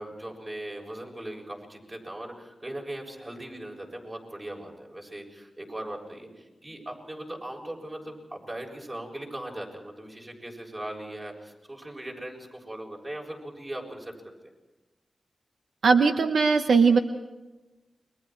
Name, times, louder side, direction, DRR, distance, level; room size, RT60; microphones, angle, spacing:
voice 1, 0.0-14.1, right 1 dB, 30° right, 0 dB, 7.2 m, -39 dB
voice 2, 15.8-17.0, right 5 dB, 85° right, 6 dB, 1.0 m, -19 dB
29.5 x 23.5 x 4.6 m, 1.1 s
wide cardioid pair, 75°, 0 cm